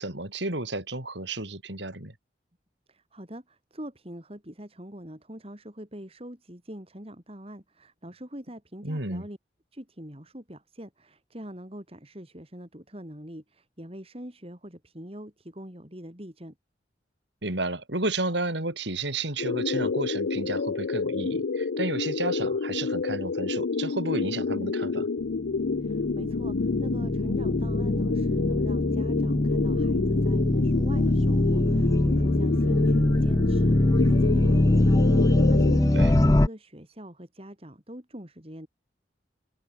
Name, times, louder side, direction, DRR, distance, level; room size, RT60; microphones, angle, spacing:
voice 1, 0.0-2.1 8.8-9.2 17.4-25.1 35.9-36.1, right 2 dB, 70° right, 5.1 m, -32 dB
voice 2, 2.9-9.4 9.7-16.6 25.8-38.7, equal, 30° right, 3.8 m, -43 dB
sound 1, 19.4-35.8, left 4 dB, 80° left, 0.6 m, -28 dB
sound 2, 25.6-36.5, left 1 dB, 20° left, 0.5 m, -23 dB
head